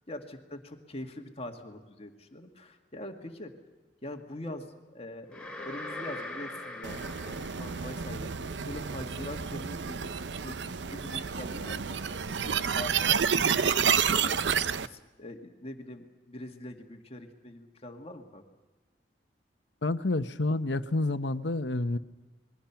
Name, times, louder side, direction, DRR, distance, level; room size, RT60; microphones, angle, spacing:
voice 1, 0.1-3.5 4.0-13.6 14.1-14.4 14.8-18.4, left 1 dB, 35° left, 4 dB, 2.0 m, -43 dB
sound 1, 5.3-8.4, left 2 dB, 5° left, 4.5 m, -41 dB
sound 2, 6.8-14.9, right 7 dB, 85° right, 0.7 m, -29 dB
voice 2, 19.8-22.0, left 2 dB, 85° left, 11 dB, 1.0 m, -29 dB
27.5 x 21.5 x 5.9 m, 1.2 s
head